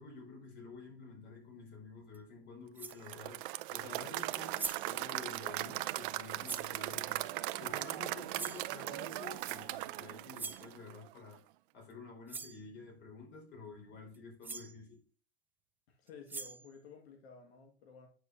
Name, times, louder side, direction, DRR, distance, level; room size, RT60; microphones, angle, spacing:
voice 1, 0.0-7.3 7.6-11.4 11.7-15.0, left 4 dB, 35° left, 4.4 m, -50 dB
sound 1, 2.1-2.2 2.7-3.1 4.3-4.4 4.5-5.0 6.4-6.7 8.3-8.7 10.3-10.7 11.9-12.0 12.3-12.6 14.1-14.2 14.4-14.7 16.1-16.7, right 4 dB, 5° right, 0.4 m, -42 dB
Applause / Crowd, 2.9-11.1, right 17 dB, 55° right, 0.6 m, -39 dB
sound 2, 3.7-9.4, right 9 dB, 80° right, 0.9 m, -55 dB
voice 2, 15.9-18.1, left 6 dB, 80° left, 1.9 m, -54 dB
9.0 x 6.4 x 2.7 m
supercardioid pair, 135°, 31 cm